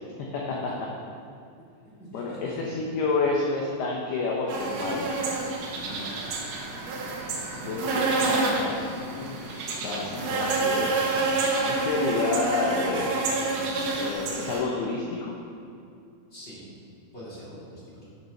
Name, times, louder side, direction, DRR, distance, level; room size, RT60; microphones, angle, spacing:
voice 1, 0.3-0.7 2.1-5.1 7.6-11.3 11.6-13.2 14.0-15.3, left 3 dB, 85° left, -2 dB, 2.2 m, -29 dB
voice 2, 2.0-2.8 5.8-6.1 16.3-16.7 17.1-18.0, equal, 25° left, -8 dB, 1.4 m, -43 dB
sound 1, 4.5-14.6, right 3 dB, 70° right, 2.5 m, -28 dB
9.4 x 6.9 x 5.9 m, 2.4 s
omnidirectional pair, 5.7 m